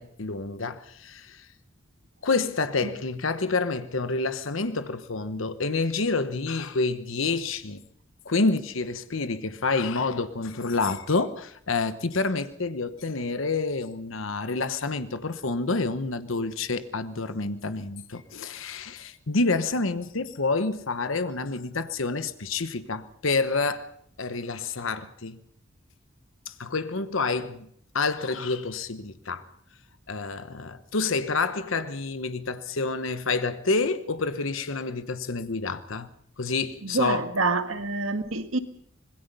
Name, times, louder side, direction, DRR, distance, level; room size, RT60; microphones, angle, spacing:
voice 1, 0.0-1.4 2.2-7.8 8.2-23.9 24.2-25.4 26.5-27.7 27.9-29.5 30.1-36.1 36.4-37.3, left 3 dB, 75° left, 1.1 m, -28 dB
voice 2, 36.8-38.6, right 3 dB, 85° right, 1.9 m, -27 dB
25.5 x 21.0 x 5.4 m
head